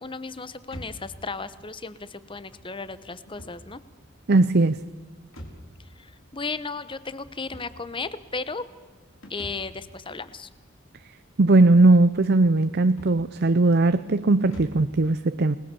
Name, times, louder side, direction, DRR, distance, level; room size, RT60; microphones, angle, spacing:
voice 1, 0.0-3.8 5.9-8.6 9.3-10.5, left 4 dB, 25° left, 1.0 m, -35 dB
sound 1, 0.6-15.0, equal, 75° left, 4.8 m, -48 dB
voice 2, 4.3-4.8 11.4-15.6, right 2 dB, 50° right, 0.6 m, -19 dB
29.0 x 20.0 x 7.0 m
head